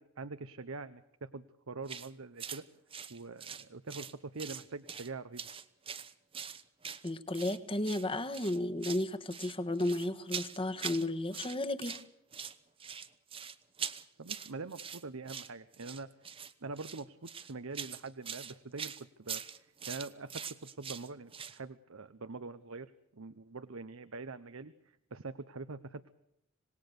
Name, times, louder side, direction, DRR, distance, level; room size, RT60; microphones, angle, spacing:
voice 1, 0.0-2.6 3.1-5.5 14.2-16.1 16.6-26.1, right 3 dB, 75° right, 11 dB, 0.9 m, -44 dB
sound 1, 1.9-2.1 2.4-2.6 2.9-4.1 4.4-5.1 5.4-7.6 7.8-8.1 8.3-9.1 9.3-11.1 11.3-12.0 12.3-21.6, right 7 dB, 25° right, 1.0 m, -43 dB
voice 2, 7.0-12.0, left 1 dB, 25° left, 10 dB, 1.5 m, -33 dB
26.5 x 19.0 x 6.8 m, 0.77 s
head